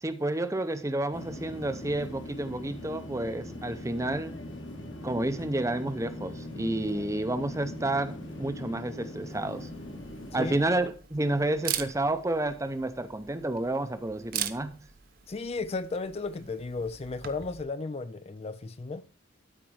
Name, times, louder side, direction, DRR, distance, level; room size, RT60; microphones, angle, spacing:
voice 1, 0.0-4.4 5.0-8.1 8.4-9.7 10.3-14.7, right 2 dB, 15° right, 0.7 m, -30 dB
sound 1, 1.1-10.7, left 1 dB, 60° left, 1.7 m, -41 dB
Camera, 9.3-17.6, right 10 dB, 45° right, 0.8 m, -41 dB
voice 2, 15.3-19.0, left 3 dB, 30° left, 0.4 m, -34 dB
12.5 x 4.6 x 4.7 m
head